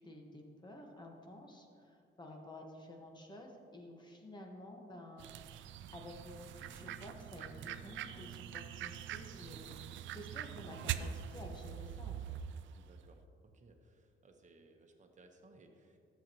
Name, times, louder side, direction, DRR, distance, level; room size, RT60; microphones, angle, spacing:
voice 1, 0.0-12.4, left 1 dB, 20° left, 1 dB, 1.4 m, -52 dB
sound 1, 5.2-12.9, right 9 dB, 75° right, 0.4 m, -44 dB
voice 2, 12.7-13.2 13.5-16.0, right 2 dB, 40° right, 4 dB, 1.2 m, -62 dB
12.0 x 7.5 x 3.0 m, 2.4 s
cardioid pair, 90°, 20 cm